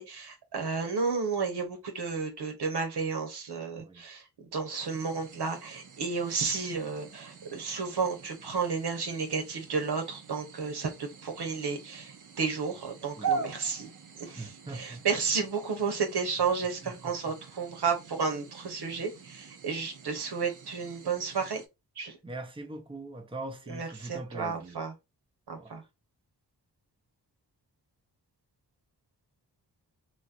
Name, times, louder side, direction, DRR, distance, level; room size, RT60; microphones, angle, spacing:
voice 1, 0.0-4.2 4.5-13.9 14.2-14.5 14.7-21.6 22.0-22.2 23.7-24.9 25.5-25.8, right 5 dB, 70° right, 1.0 m, -32 dB
sound 1, 4.8-21.7, right 5 dB, 50° right, 0.6 m, -43 dB
voice 2, 14.4-15.1 16.8-17.1 18.9-19.0 22.2-24.8 25.6-25.9, right 2 dB, 15° right, 0.8 m, -42 dB
2.9 x 2.5 x 2.7 m
cardioid pair, 50°, 41 cm